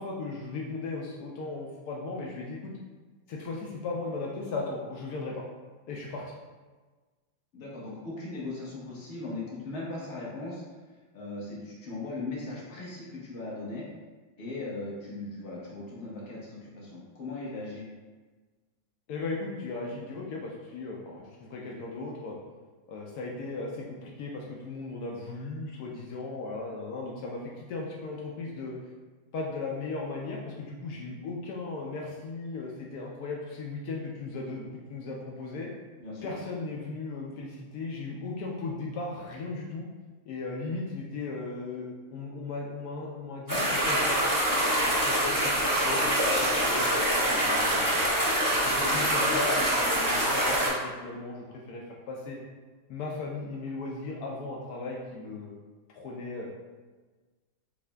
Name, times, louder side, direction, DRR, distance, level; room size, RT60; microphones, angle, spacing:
voice 1, 0.0-2.7 3.3-5.4 5.9-6.2 19.1-22.4 22.9-28.7 29.3-35.7 36.2-39.9 40.3-44.1 44.6-48.1 48.5-52.4 52.9-55.6 55.9-56.5, left 3 dB, 85° left, -2 dB, 0.8 m, -37 dB
voice 2, 7.5-10.6 11.1-13.8 14.4-17.8 36.0-36.4, left 2 dB, 45° left, -6 dB, 1.1 m, -38 dB
sound 1, 43.5-50.7, right 1 dB, 25° right, 0.4 m, -25 dB
7.1 x 2.6 x 2.2 m, 1.3 s
omnidirectional pair, 2.3 m